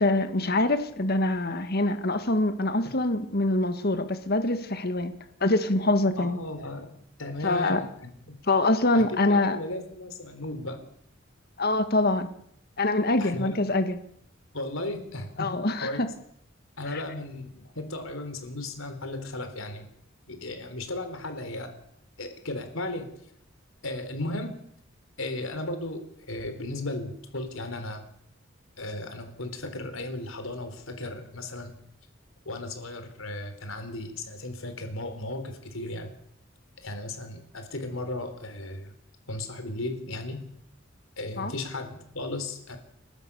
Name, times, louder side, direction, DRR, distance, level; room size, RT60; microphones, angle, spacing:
voice 1, 0.0-5.1 5.4-6.4 7.4-7.8 8.5-9.6 11.6-12.3 12.8-14.0 15.4-16.1 16.9-17.0 41.4-41.5, left 2 dB, 50° left, 10 dB, 1.8 m, -24 dB
voice 2, 6.2-6.9 7.2-8.4 8.9-10.8 13.2-13.6 14.5-16.0 16.8-19.9 20.3-21.7 22.2-23.1 23.8-24.5 25.2-28.0 28.8-31.8 32.5-36.1 36.8-38.9 39.3-40.4 41.2-42.8, left 2 dB, 85° left, 7 dB, 3.8 m, -35 dB
30.0 x 12.5 x 6.9 m, 0.70 s
head